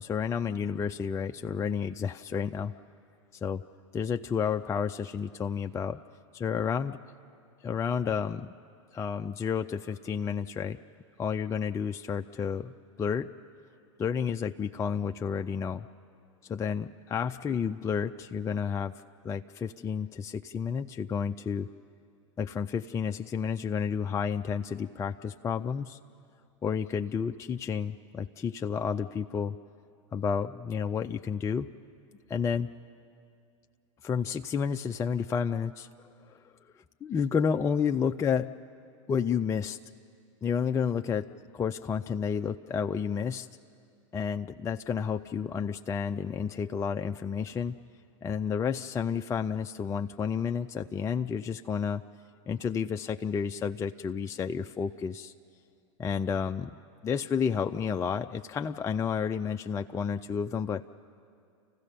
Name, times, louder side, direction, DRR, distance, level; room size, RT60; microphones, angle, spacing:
voice 1, 0.0-2.7 3.4-3.6 3.9-6.0 6.3-7.0 7.6-8.5 8.9-10.8 11.2-12.7 13.0-13.3 14.0-15.9 16.4-21.7 22.4-26.0 26.6-29.6 30.1-31.7 32.3-32.7 34.0-35.9 36.3-36.4 37.0-38.5 39.1-39.8 40.4-43.5 44.1-47.8 48.2-52.0 52.5-55.3 56.0-56.8 57.0-60.9, left 6 dB, 15° left, 6 dB, 0.4 m, -31 dB
28.5 x 15.5 x 6.8 m, 2.3 s
hypercardioid pair, 100°, 17 cm